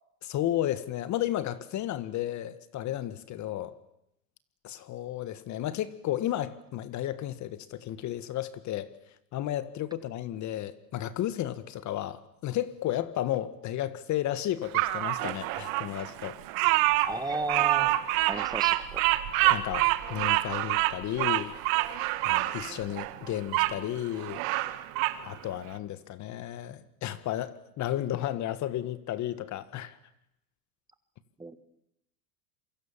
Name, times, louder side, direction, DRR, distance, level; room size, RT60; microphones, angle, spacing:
voice 1, 0.2-3.7 4.6-8.9 9.3-16.4 19.5-21.6 22.2-24.4 25.2-29.9, left 12 dB, 35° left, 15 dB, 1.6 m, -33 dB
Bird vocalization bird call bird song, 14.7-23.7 24.2-25.2, right 18 dB, 55° right, 1.9 m, -27 dB
voice 2, 17.1-18.0 18.3-19.0 31.4-31.6, right 2 dB, 10° right, 11 dB, 1.6 m, -33 dB
27.5 x 24.0 x 7.3 m, 0.81 s
supercardioid pair, 125°, 49 cm